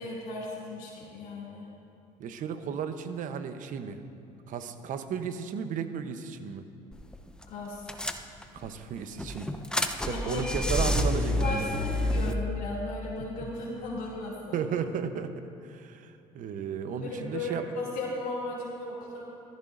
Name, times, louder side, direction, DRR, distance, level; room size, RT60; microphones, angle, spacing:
voice 1, 0.0-1.7 7.5-7.9 10.1-10.8 11.4-14.7 17.0-19.2, left 2 dB, 70° left, -6 dB, 2.5 m, -36 dB
voice 2, 2.2-4.0 4.5-6.7 8.5-11.7 13.4-13.5 14.5-17.6, right 7 dB, 60° right, 9 dB, 0.9 m, -34 dB
sound 1, 6.9-7.2 7.4-7.5 7.9-8.7 9.2-12.3, left 1 dB, 5° left, 0.8 m, -28 dB
15.0 x 13.5 x 2.6 m, 2.8 s
supercardioid pair, 75°, 15 cm